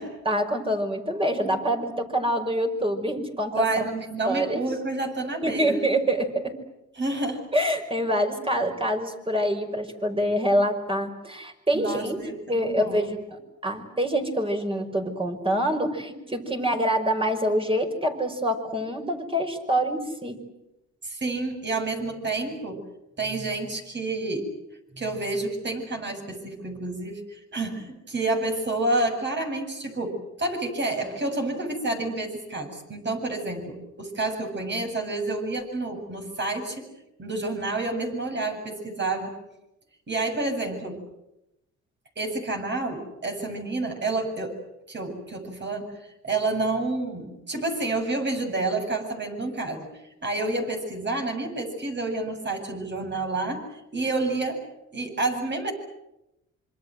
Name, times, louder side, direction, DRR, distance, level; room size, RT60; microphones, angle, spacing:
voice 1, 0.3-3.8 4.3-4.6 5.4-6.5 7.5-12.2 12.5-20.4, equal, 20° right, 4 dB, 5.5 m, -26 dB
voice 2, 3.5-5.8 7.0-7.5 11.7-13.1 21.0-22.8 23.2-24.5 24.9-36.9 37.2-39.4 40.1-41.0 42.2-44.6 44.9-49.9 50.2-54.6 54.9-55.7, right 2 dB, 35° right, 4 dB, 7.9 m, -29 dB
26.5 x 25.0 x 7.9 m, 0.90 s
cardioid pair, 90°, 30 cm